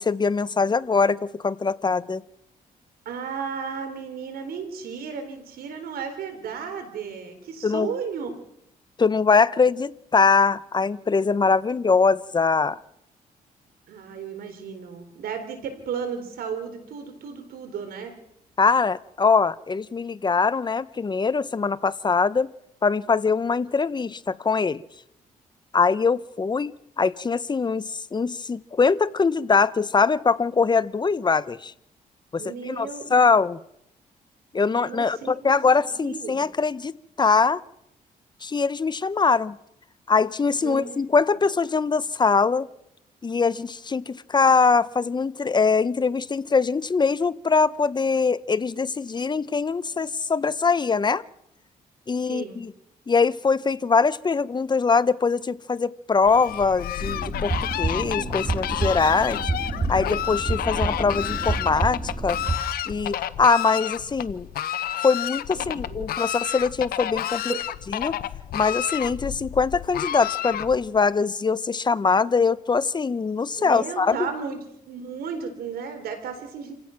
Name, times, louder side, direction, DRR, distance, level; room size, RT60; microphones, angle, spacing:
voice 1, 0.0-2.2 7.6-7.9 9.0-12.8 18.6-22.5 22.8-24.8 25.7-31.7 32.3-33.6 34.5-36.9 37.2-37.6 38.4-39.6 40.1-42.7 43.2-51.2 52.1-52.7 53.1-59.5 59.9-62.4 62.9-64.5 65.0-67.6 67.9-68.2 68.5-74.3, left 5 dB, 30° left, 0.8 m, -22 dB
voice 2, 3.1-8.3 13.9-18.1 32.3-33.3 34.7-36.4 40.6-41.1 52.3-52.6 65.5-66.1 67.5-67.6 73.5-74.6 74.8-76.7, right 6 dB, 85° right, 4.1 m, -34 dB
Fowl, 56.2-71.0, left 11 dB, 85° left, 0.9 m, -30 dB
sound 1, 57.0-62.6, right 3 dB, 30° right, 2.2 m, -29 dB
28.0 x 16.5 x 6.0 m
cardioid pair, 90°, 15 cm